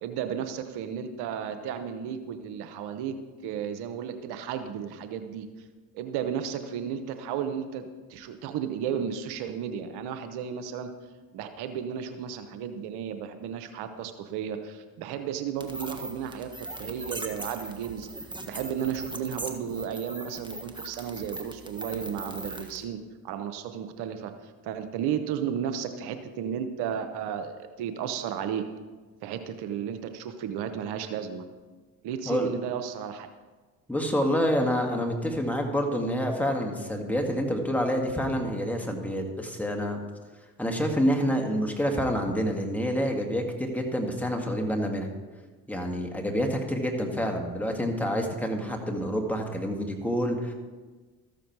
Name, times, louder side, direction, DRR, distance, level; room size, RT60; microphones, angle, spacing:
voice 1, 0.0-3.2 3.4-5.5 5.9-10.9 11.3-18.1 18.5-28.6 29.2-31.4 32.0-33.3, right 8 dB, 75° right, 9 dB, 0.9 m, -33 dB
sound 1, 15.6-22.8, right 1 dB, 10° right, 1.4 m, -40 dB
voice 2, 33.9-40.0 40.6-45.1 45.7-50.5, equal, 5° left, 1 dB, 2.0 m, -27 dB
13.5 x 7.1 x 4.6 m, 1.3 s
supercardioid pair, 60°, 39 cm